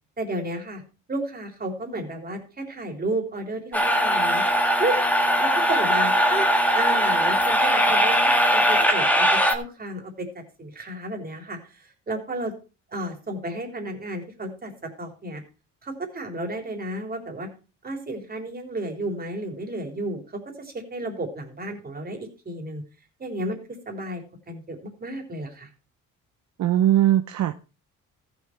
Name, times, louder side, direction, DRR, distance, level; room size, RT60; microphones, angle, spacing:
voice 1, 0.2-0.8 1.1-4.4 4.8-4.9 5.4-6.5 6.7-12.5 12.9-14.7 15.0-15.4 15.8-17.5 17.8-22.8 23.2-24.2 24.5-25.7, right 2 dB, 30° right, 3 dB, 3.7 m, -32 dB
sound 1, 3.7-9.6, equal, 5° left, 1.9 m, -20 dB
voice 2, 26.6-27.5, right 12 dB, 70° right, 9 dB, 0.8 m, -20 dB
14.0 x 7.3 x 4.6 m, 0.33 s
cardioid pair, 90°, 30 cm